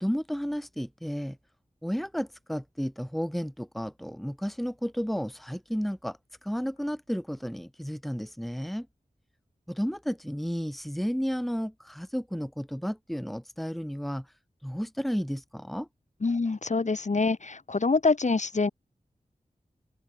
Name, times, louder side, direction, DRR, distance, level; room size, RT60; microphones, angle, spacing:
voice 1, 0.0-1.4 1.8-6.2 6.4-8.9 9.7-14.2 14.6-15.9, equal, ahead, 1.7 m, -32 dB
voice 2, 16.2-18.7, left 3 dB, 55° left, 1.8 m, -25 dB
open air
wide cardioid pair, 85°, 15 cm